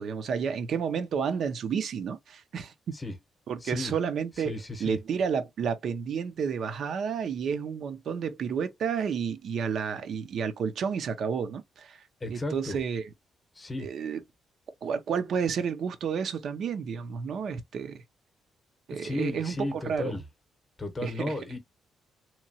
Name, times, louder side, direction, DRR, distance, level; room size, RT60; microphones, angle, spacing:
voice 1, 0.0-3.0 3.5-12.0 12.3-13.1 13.8-14.2 14.8-18.0 18.9-20.2 21.0-21.3, right 6 dB, 65° right, 0.5 m, -31 dB
voice 2, 3.6-3.9 4.4-5.0 12.2-12.8 13.5-13.9 18.9-20.2 20.8-21.6, left 2 dB, 20° left, 0.8 m, -34 dB
2.9 x 2.2 x 2.6 m
cardioid pair, 105°, 0 cm